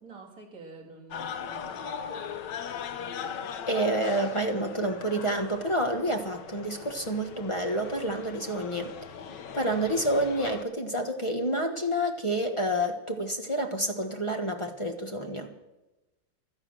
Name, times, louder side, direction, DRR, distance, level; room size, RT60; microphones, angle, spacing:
voice 1, 0.0-2.3, right 3 dB, 50° right, -1 dB, 3.0 m, -48 dB
sound 1, 1.1-10.6, left 7 dB, 75° left, 1.5 m, -39 dB
voice 2, 3.7-8.9 9.5-15.5, right 1 dB, 20° left, 4 dB, 1.2 m, -29 dB
16.0 x 12.0 x 6.2 m, 1.0 s
omnidirectional pair, 2.0 m